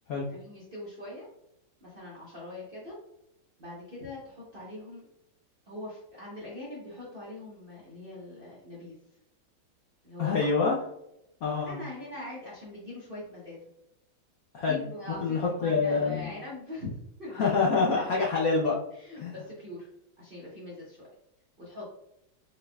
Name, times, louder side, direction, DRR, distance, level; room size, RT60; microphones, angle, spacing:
voice 1, 0.3-1.3 1.8-3.0 3.6-5.0 5.7-9.0 10.0-10.4 11.7-13.6 14.6-18.2 18.9-19.9 20.2-21.1 21.6-21.9, left 1 dB, 50° right, -7 dB, 0.6 m, -42 dB
voice 2, 10.2-10.7 11.4-11.8 14.5-14.8 15.2-16.3 17.3-18.8 19.1-19.3, left 4 dB, 75° left, -3 dB, 0.8 m, -26 dB
3.9 x 3.8 x 2.2 m, 0.81 s
omnidirectional pair, 2.2 m